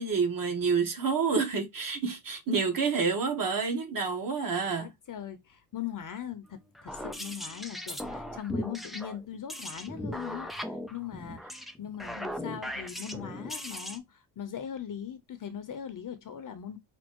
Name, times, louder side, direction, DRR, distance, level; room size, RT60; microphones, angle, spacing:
voice 1, 0.0-4.9 12.1-12.3, right 5 dB, 40° right, 1.3 m, -28 dB
voice 2, 4.8-16.8, left 9 dB, 40° left, 0.8 m, -40 dB
sound 1, 6.8-14.0, equal, ahead, 0.3 m, -38 dB
5.2 x 2.9 x 2.9 m
cardioid pair, 155°, 49 cm